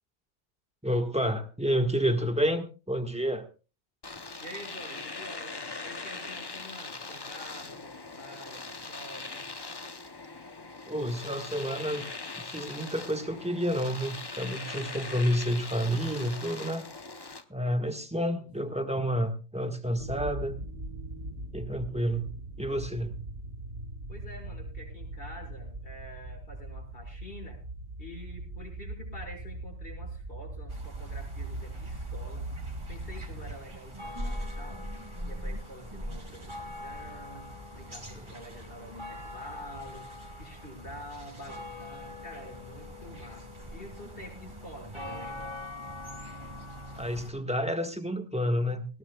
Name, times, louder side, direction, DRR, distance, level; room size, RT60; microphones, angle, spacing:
voice 1, 0.8-3.5 10.9-12.1 12.4-16.9 17.5-20.6 21.5-22.3 22.6-23.2 46.9-49.0, equal, 5° right, 6 dB, 1.5 m, -29 dB
Domestic sounds home sounds, 4.0-17.4, left 3 dB, 25° left, 0.8 m, -41 dB
voice 2, 4.4-9.5 18.3-18.8 24.1-27.6 28.0-32.5 32.9-34.8 35.2-37.5 37.7-40.1 40.4-45.6, equal, 55° left, 1 dB, 6.2 m, -47 dB
sound 1, 20.0-33.6, right 2 dB, 70° right, 1.8 m, -40 dB
sound 2, 30.7-47.3, equal, 25° right, 2.4 m, -42 dB
19.5 x 17.0 x 2.3 m, 0.33 s
omnidirectional pair, 1.2 m